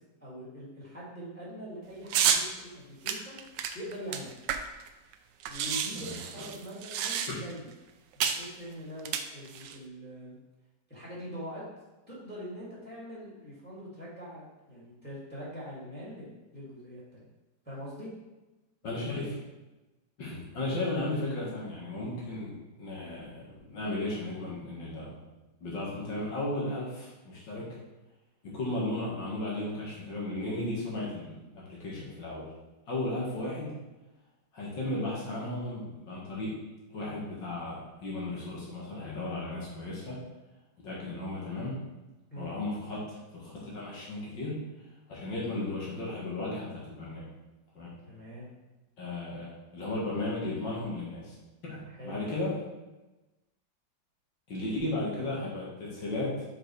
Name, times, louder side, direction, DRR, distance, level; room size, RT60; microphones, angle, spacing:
voice 1, 0.2-4.3 5.5-7.7 8.1-10.4 10.9-11.6 12.1-17.2 17.6-18.1 31.9-32.1 42.3-42.5 48.1-48.5 51.9-52.2, equal, 5° left, -7 dB, 2.3 m, -43 dB
sound 1, 2.1-2.5 3.1-4.9 5.1-5.2 5.4-7.6 8.2-8.5 9.0-9.8, right 8 dB, 75° right, 1.1 m, -30 dB
voice 2, 18.8-19.4 20.2-25.2 25.6-27.7 28.4-32.5 32.9-33.7 34.5-36.6 36.9-40.2 40.8-41.8 42.4-44.6 45.1-47.3 47.7-47.9 49.0-51.4 51.7-52.6 54.5-56.5, left 2 dB, 65° left, -5 dB, 2.3 m, -35 dB
6.0 x 4.6 x 4.7 m, 1.1 s
omnidirectional pair, 2.1 m